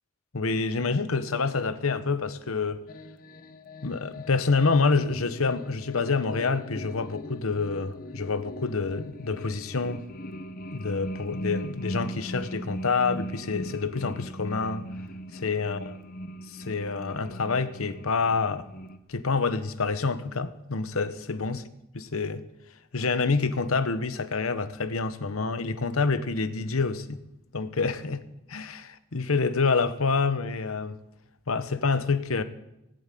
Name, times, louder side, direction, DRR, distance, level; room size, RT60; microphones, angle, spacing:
voice 1, 0.3-2.8 3.8-10.0 10.7-14.9 15.3-16.0 16.5-18.7 19.1-21.7 21.9-22.4 22.9-27.2 27.5-28.2 28.5-31.0 31.5-32.4, left 4 dB, 80° left, 1.0 m, -27 dB
sound 1, 2.9-19.0, equal, 40° left, 0.9 m, -40 dB
18.0 x 7.8 x 9.2 m
head